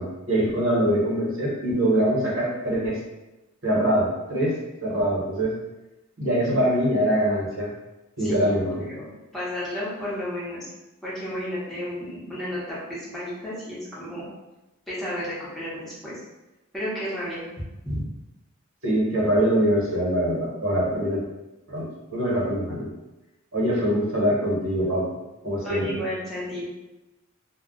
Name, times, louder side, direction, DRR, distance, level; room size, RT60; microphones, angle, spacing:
voice 1, 0.0-3.0 3.6-4.5 4.8-5.5 6.2-7.7 8.2-8.7 18.8-21.2 21.7-21.9 22.1-22.9 23.5-25.1 25.4-26.0, equal, 75° right, -5 dB, 1.1 m, -23 dB
voice 2, 8.2-10.7 11.0-14.3 14.9-16.2 16.7-17.5 17.8-18.0 25.6-26.7, equal, ahead, -9 dB, 0.8 m, -32 dB
2.3 x 2.1 x 3.8 m, 1.0 s
head